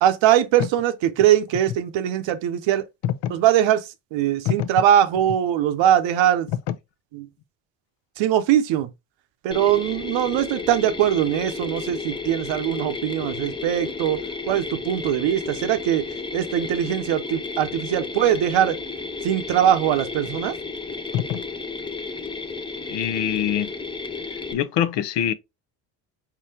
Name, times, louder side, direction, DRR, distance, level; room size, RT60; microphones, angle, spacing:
voice 1, 0.0-2.8 3.3-3.8 4.1-6.5 7.1-7.3 8.2-8.9 9.4-14.2 14.5-16.0 16.3-18.8 19.2-20.5, right 11 dB, 70° right, 0.8 m, -21 dB
Mechanisms, 9.5-24.5, left 4 dB, 10° left, 0.6 m, -33 dB
voice 2, 22.9-23.7 24.5-25.3, left 10 dB, 60° left, 0.7 m, -24 dB
4.4 x 3.8 x 2.7 m
supercardioid pair, 85°, 48 cm